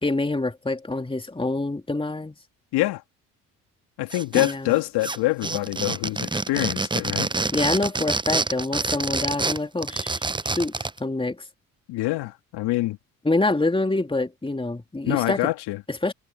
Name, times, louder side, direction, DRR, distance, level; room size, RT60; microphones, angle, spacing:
voice 1, 0.0-2.4 4.3-4.7 7.5-10.7 11.0-11.4 13.2-15.5 15.9-16.1, left 2 dB, 15° left, 2.8 m, -26 dB
voice 2, 4.0-7.3 11.9-13.0 15.1-15.8, left 18 dB, 70° left, 2.8 m, -25 dB
sound 1, 4.1-4.7 5.0-11.0, right 3 dB, 10° right, 0.8 m, -27 dB
hypercardioid pair, 55°, 41 cm